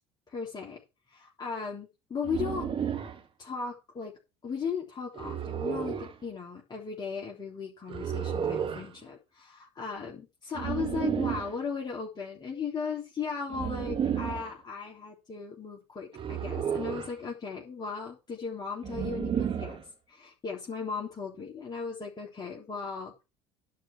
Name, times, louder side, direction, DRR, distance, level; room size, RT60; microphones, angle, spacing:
voice 1, 0.3-0.8 1.1-2.7 3.4-4.1 4.4-19.8 20.1-23.2, left 5 dB, 30° left, -3 dB, 3.4 m, -37 dB
sound 1, 2.2-3.2 5.1-6.1 7.9-8.9 10.5-11.5 13.5-14.5 16.1-17.2 18.8-19.8, right 8 dB, 40° right, 2.2 m, -32 dB
11.0 x 5.1 x 7.3 m, 0.29 s
hypercardioid pair, 65°, 14 cm